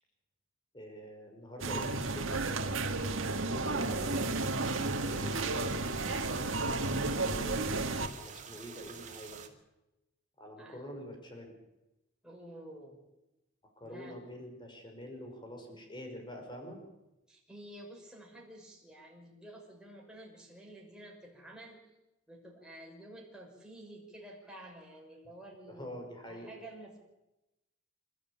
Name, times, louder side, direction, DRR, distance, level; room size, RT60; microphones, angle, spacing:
voice 1, 0.7-2.5 3.1-5.9 7.2-9.4 10.4-11.5 13.8-16.8 25.7-26.5, equal, 25° left, 3 dB, 5.4 m, -46 dB
sound 1, 1.6-8.1, right 3 dB, 75° right, 1.9 m, -32 dB
sound 2, 3.8-9.5, right 6 dB, 40° right, 2.3 m, -48 dB
voice 2, 10.6-10.9 12.2-13.0 13.8-14.2 17.3-21.8 22.3-26.0 26.3-27.0, right 1 dB, 5° right, -2 dB, 6.2 m, -51 dB
27.5 x 13.5 x 8.8 m, 0.95 s
head